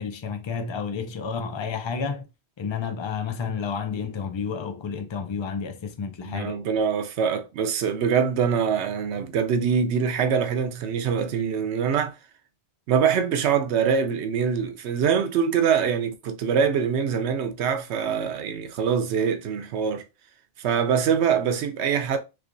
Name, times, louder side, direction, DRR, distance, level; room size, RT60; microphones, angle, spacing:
voice 1, 0.0-2.2 2.6-6.6, left 6 dB, 50° left, 0.3 m, -30 dB
voice 2, 6.2-12.2 12.9-20.0 20.6-22.2, right 7 dB, 75° right, 0.8 m, -24 dB
3.3 x 3.2 x 2.5 m
omnidirectional pair, 1.2 m